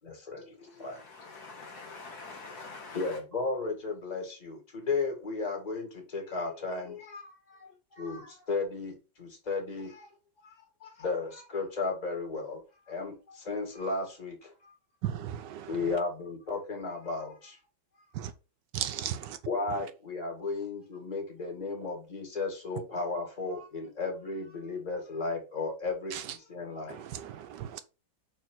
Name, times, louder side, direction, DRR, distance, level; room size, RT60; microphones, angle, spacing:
voice 1, 0.0-1.0 2.9-7.7 8.0-10.1 10.4-10.5 10.8-12.6 12.9-14.7 15.7-17.6 19.5-26.1 26.5-27.0, left 3 dB, 20° left, 2.2 m, -34 dB
voice 2, 0.7-3.2, left 4 dB, 55° left, 1.8 m, -45 dB
voice 3, 15.0-16.0 18.1-18.3 18.7-19.4 19.7-19.9 26.1-26.4 26.9-27.8, right 10 dB, 70° right, 1.2 m, -36 dB
5.6 x 4.3 x 6.0 m
omnidirectional pair, 2.1 m